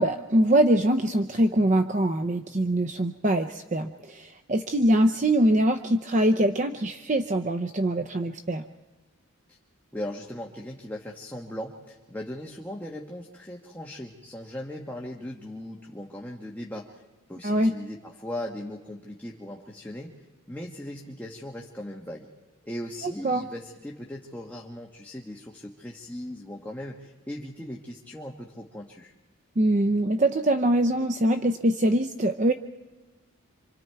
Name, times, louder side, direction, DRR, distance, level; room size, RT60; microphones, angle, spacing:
voice 1, 0.0-8.6 17.4-17.7 23.0-23.5 29.6-32.5, right 1 dB, 35° right, 8 dB, 0.6 m, -23 dB
voice 2, 9.9-17.0 17.3-22.3 22.6-29.1, left 1 dB, 10° left, -1 dB, 1.3 m, -38 dB
27.5 x 26.0 x 4.6 m, 1.2 s
head